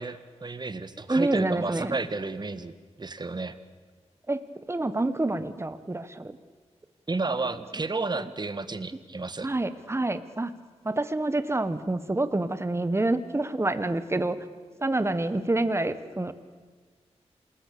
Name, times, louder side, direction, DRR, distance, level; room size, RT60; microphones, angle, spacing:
voice 1, 0.0-2.7 3.0-3.5 7.1-9.5, right 3 dB, 40° right, 12 dB, 1.5 m, -32 dB
voice 2, 1.1-2.0 4.3-4.4 4.7-6.4 8.2-8.3 9.4-10.5 10.8-14.4 14.8-16.3, right 2 dB, 25° right, 12 dB, 1.5 m, -27 dB
28.0 x 20.5 x 7.0 m, 1.5 s
wide cardioid pair, 90°, 12 cm